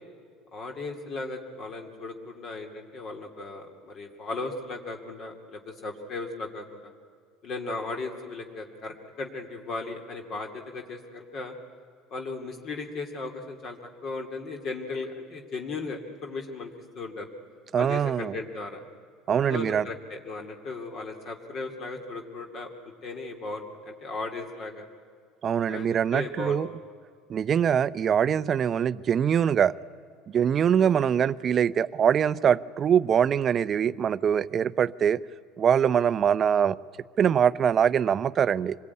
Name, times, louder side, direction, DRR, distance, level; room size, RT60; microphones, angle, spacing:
voice 1, 0.5-6.6 7.4-11.5 12.1-16.7 17.0-17.3 17.8-18.8 19.5-22.7 23.0-24.8 25.7-26.6 30.8-30.9, left 3 dB, 45° left, 4 dB, 2.5 m, -36 dB
voice 2, 17.7-18.4 19.3-19.8 25.4-26.7 27.3-29.7 30.3-35.2 35.6-36.8 37.2-38.8, right 8 dB, 35° right, 16 dB, 0.6 m, -23 dB
26.0 x 20.5 x 9.6 m, 2.1 s
cardioid pair, 135°, 0 cm